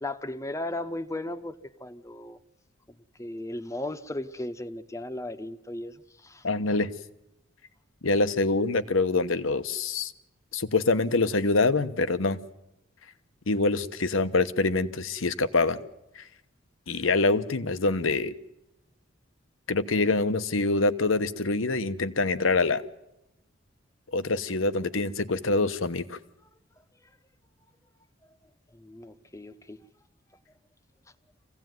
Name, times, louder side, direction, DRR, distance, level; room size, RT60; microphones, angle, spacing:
voice 1, 0.0-2.4 3.2-6.4 28.7-29.8, left 1 dB, 15° left, 0.9 m, -36 dB
voice 2, 6.4-6.9 8.0-10.1 10.5-12.4 13.5-15.8 16.2-16.3 16.9-18.3 19.7-22.8 24.1-26.2, left 3 dB, 80° left, 1.0 m, -25 dB
25.0 x 16.5 x 9.3 m
head